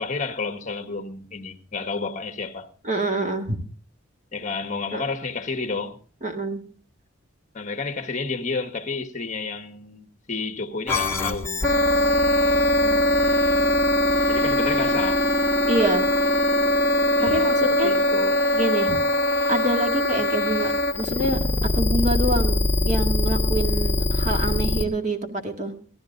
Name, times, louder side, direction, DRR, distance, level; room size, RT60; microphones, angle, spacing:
voice 1, 0.0-2.7 4.3-6.0 7.5-11.6 14.3-15.2 17.2-18.3, left 4 dB, 40° left, 1.5 m, -31 dB
voice 2, 2.8-3.6 4.9-5.1 6.2-6.6 12.8-13.0 15.7-16.1 17.2-17.9 18.5-19.0 19.5-21.4 21.8-25.7, right 1 dB, 35° right, 2.0 m, -26 dB
sound 1, 10.9-24.8, left 1 dB, 15° left, 1.6 m, -21 dB
17.5 x 13.5 x 3.9 m
head